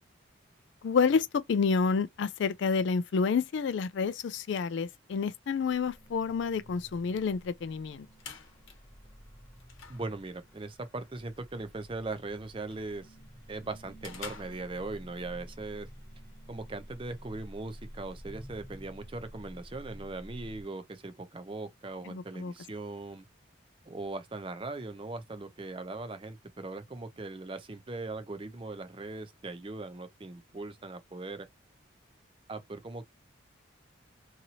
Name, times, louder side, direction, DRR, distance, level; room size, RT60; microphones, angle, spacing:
voice 1, 0.8-8.1 22.1-22.5, left 5 dB, 65° left, 0.3 m, -29 dB
sound 1, 5.7-20.7, equal, 15° left, 1.0 m, -50 dB
sound 2, 8.1-15.3, left 6 dB, 80° left, 0.9 m, -51 dB
voice 2, 9.9-13.1 13.5-15.9 16.5-23.2 23.9-31.5 32.5-33.1, right 2 dB, 25° right, 0.5 m, -40 dB
2.8 x 2.7 x 2.7 m
head